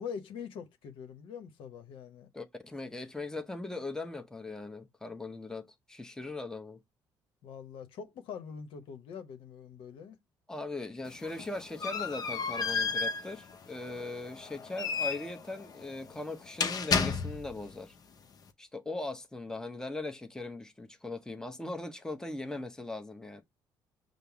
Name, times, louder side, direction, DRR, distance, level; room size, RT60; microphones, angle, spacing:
voice 1, 0.0-2.3 7.4-10.2, left 7 dB, 75° left, 0.8 m, -43 dB
voice 2, 2.3-6.8 10.5-18.0 18.6-23.4, left 2 dB, 5° left, 0.7 m, -39 dB
sound 1, 11.0-17.7, left 5 dB, 45° left, 0.6 m, -33 dB
5.3 x 2.0 x 4.6 m
supercardioid pair, 75°, 9 cm